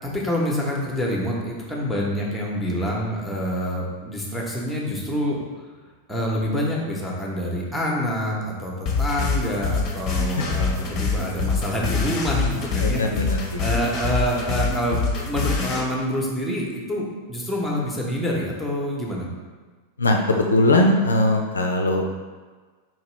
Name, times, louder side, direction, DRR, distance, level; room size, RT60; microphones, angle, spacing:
voice 1, 0.0-5.4 6.1-13.2 13.6-19.3, equal, 5° left, -3 dB, 0.9 m, -26 dB
sound 1, 8.9-15.8, left 4 dB, 35° left, 0.7 m, -25 dB
voice 2, 12.8-13.6 20.0-22.1, left 2 dB, 75° left, 2 dB, 0.3 m, -20 dB
4.5 x 2.9 x 3.1 m, 1.4 s
figure-of-eight pair, 90°, 0 cm